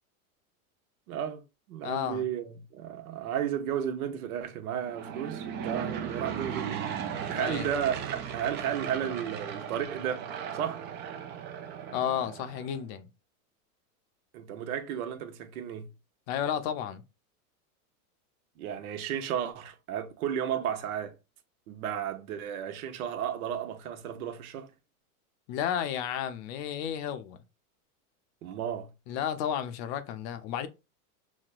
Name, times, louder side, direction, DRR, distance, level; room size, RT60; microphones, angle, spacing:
voice 1, 1.1-1.4 1.7-6.8 7.1-10.3 10.5-10.8 14.3-15.9 18.6-21.1 21.7-24.7 28.4-28.9, right 9 dB, 70° right, 1.0 m, -33 dB
voice 2, 1.8-2.2 7.3-7.7 11.9-13.1 16.3-17.0 25.5-27.4 29.1-30.7, left 9 dB, 45° left, 0.6 m, -32 dB
Aircraft / Engine, 4.8-12.8, right 8 dB, 25° right, 0.4 m, -37 dB
6.0 x 2.2 x 2.4 m
supercardioid pair, 135°, 45 cm